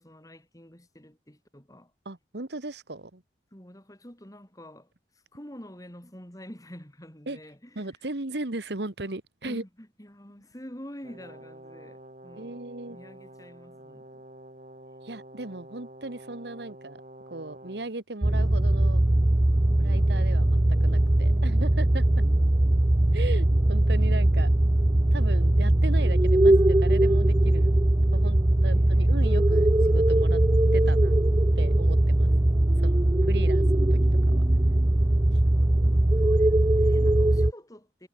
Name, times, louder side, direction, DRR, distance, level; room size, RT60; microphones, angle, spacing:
voice 1, 0.0-1.9 3.5-4.9 5.3-7.9 9.4-14.2 28.6-29.1 35.6-38.1, equal, 20° left, 3.7 m, -47 dB
voice 2, 2.1-3.2 7.3-7.4 7.8-9.6 12.4-13.0 15.0-17.0 17.3-19.0 19.8-22.2 23.1-24.5 25.1-27.7 28.1-30.4 30.7-31.2 31.6-32.3 32.8-34.0 34.3-34.4 35.3-35.4, right 2 dB, 65° right, 1.6 m, -37 dB
Brass instrument, 11.0-17.9, right 1 dB, 40° right, 6.1 m, -48 dB
sound 1, 18.2-37.5, right 1 dB, 20° right, 0.6 m, -21 dB
head